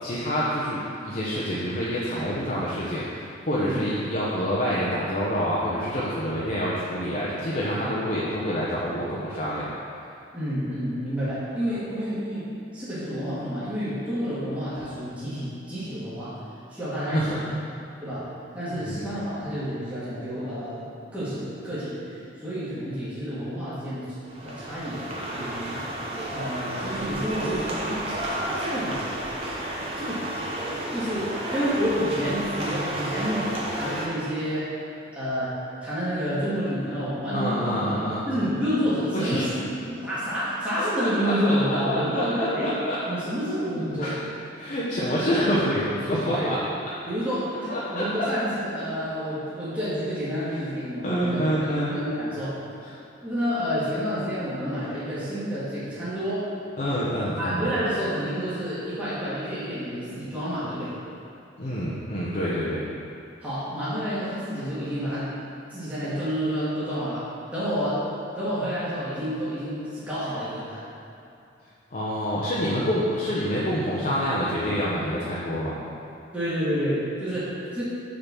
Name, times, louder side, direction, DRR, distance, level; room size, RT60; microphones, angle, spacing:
voice 1, 0.0-9.7 17.1-17.6 18.7-19.0 37.3-38.3 39.1-39.5 41.0-43.0 44.0-44.1 44.6-46.6 47.7-48.3 51.0-51.9 56.8-57.7 61.6-62.8 71.9-75.8, equal, 40° left, -8 dB, 0.8 m, -27 dB
voice 2, 10.3-16.4 16.7-17.4 18.0-22.0 22.4-24.1 24.4-25.8 26.3-29.0 29.9-30.3 30.9-34.7 35.1-37.8 38.2-39.5 39.9-42.8 43.1-44.2 46.3-46.5 47.0-52.6 53.2-56.5 57.4-61.0 63.4-65.3 65.7-68.1 68.3-70.8 76.3-77.8, equal, 10° right, -13 dB, 1.7 m, -29 dB
sound 1, 24.2-34.1, right 1 dB, 30° right, 0.9 m, -31 dB
6.6 x 3.9 x 6.0 m, 2.6 s
head